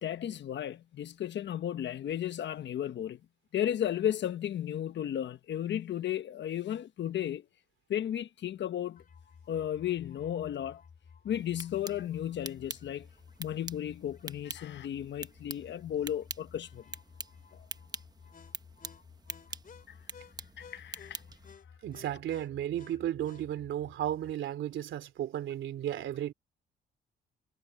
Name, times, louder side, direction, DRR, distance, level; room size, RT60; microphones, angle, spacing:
voice 1, 0.0-3.2 3.5-7.4 7.9-9.0 9.5-10.8 11.2-13.1 13.4-16.8 20.6-21.2, left 10 dB, 65° left, 1.2 m, -34 dB
sound 1, 9.0-24.3, left 6 dB, 45° left, 4.4 m, -55 dB
sound 2, 11.3-21.5, right 3 dB, 20° right, 1.0 m, -46 dB
voice 2, 21.8-26.3, right 11 dB, 75° right, 3.1 m, -34 dB
cardioid pair, 90°, 20 cm